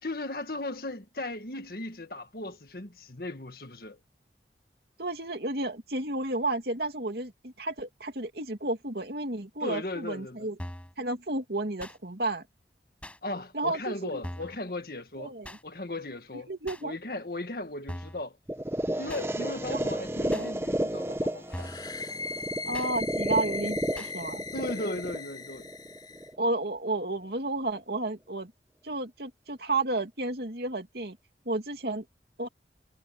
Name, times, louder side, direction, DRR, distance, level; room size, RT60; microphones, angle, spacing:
voice 1, 0.0-4.0 9.6-10.5 13.2-15.3 15.6-16.5 16.8-18.4 19.0-21.7 24.5-25.7, left 2 dB, 55° left, 1.8 m, -37 dB
voice 2, 5.0-10.5 11.0-12.4 13.5-14.2 15.2-15.6 16.5-16.9 19.7-19.8 20.2-20.5 22.6-24.4 26.4-28.5 28.8-31.2 31.5-32.0 32.4-32.5, right 2 dB, 65° right, 2.6 m, -32 dB
sound 1, 10.6-10.9 11.8-12.0 13.0-13.2 14.2-14.6 15.4-15.6 16.7-16.8 17.9-18.2 19.1-19.3 20.3-20.5 21.5-21.9 22.7-22.9 23.9-24.1, equal, 5° left, 6.7 m, -40 dB
sound 2, 18.5-26.5, right 1 dB, 15° right, 0.8 m, -32 dB
sound 3, 21.5-26.3, left 4 dB, 25° left, 4.8 m, -39 dB
head